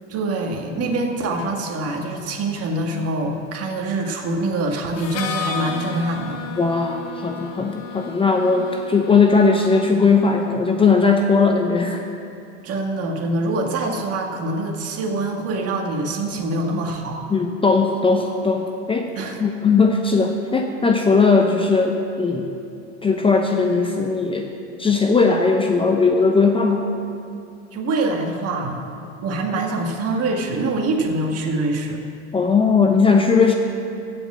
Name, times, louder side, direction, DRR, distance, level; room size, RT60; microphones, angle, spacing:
voice 1, 0.1-6.4 12.6-17.2 19.2-19.4 27.7-28.9 29.2-32.0, right 2 dB, 40° right, 2 dB, 1.8 m, -24 dB
Harmonica, 5.0-10.7, left 6 dB, 40° left, 1.1 m, -34 dB
voice 2, 6.6-12.0 17.3-19.1 19.4-22.5 23.0-24.5 24.8-26.8 32.3-33.5, left 4 dB, 15° left, 3 dB, 0.7 m, -18 dB
16.0 x 5.3 x 7.5 m, 2.6 s
supercardioid pair, 110°, 38 cm